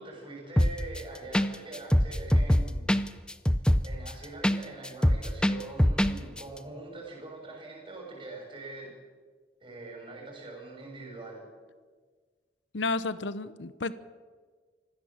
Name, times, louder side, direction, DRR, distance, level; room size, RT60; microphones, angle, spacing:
voice 1, 0.0-3.0 3.8-8.9 9.6-11.5, right 2 dB, 30° right, 0 dB, 6.7 m, -43 dB
sound 1, 0.6-1.0 1.3-1.5 1.7-4.6 4.8-6.1 6.4-6.5, equal, 5° left, 0.6 m, -23 dB
voice 2, 12.7-13.9, left 3 dB, 90° left, 14 dB, 0.9 m, -31 dB
25.0 x 16.0 x 7.4 m, 1.5 s
head